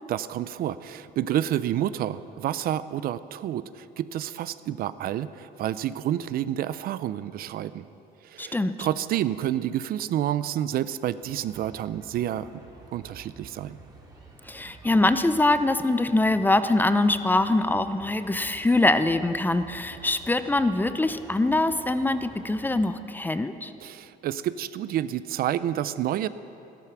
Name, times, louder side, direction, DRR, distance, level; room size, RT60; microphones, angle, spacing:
voice 1, 0.1-7.8 8.2-12.5 12.9-13.8 23.8-26.3, right 11 dB, 60° right, 15 dB, 0.5 m, -29 dB
voice 2, 8.4-8.9 14.5-23.7, left 2 dB, 10° left, 11 dB, 0.5 m, -23 dB
sound 1, 11.2-22.8, right 2 dB, 25° right, 2.8 m, -49 dB
13.0 x 13.0 x 6.0 m, 2.7 s
cardioid pair, 110°, 17 cm